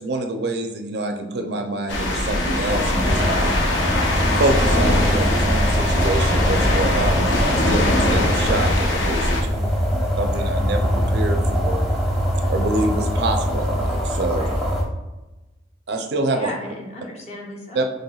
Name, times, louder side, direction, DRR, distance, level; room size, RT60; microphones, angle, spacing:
voice 1, 0.0-3.5 4.4-9.5 10.2-11.8 12.5-14.5 15.9-16.5 17.7-17.8, right 2 dB, 55° right, 4 dB, 0.4 m, -26 dB
sound 1, 1.9-9.4, left 1 dB, 70° left, 0.6 m, -21 dB
sound 2, 2.7-14.8, equal, ahead, 0.8 m, -23 dB
voice 2, 9.3-10.0 14.3-14.6 16.3-18.0, left 1 dB, 35° left, -2 dB, 0.8 m, -36 dB
5.4 x 3.3 x 2.3 m, 1.1 s
head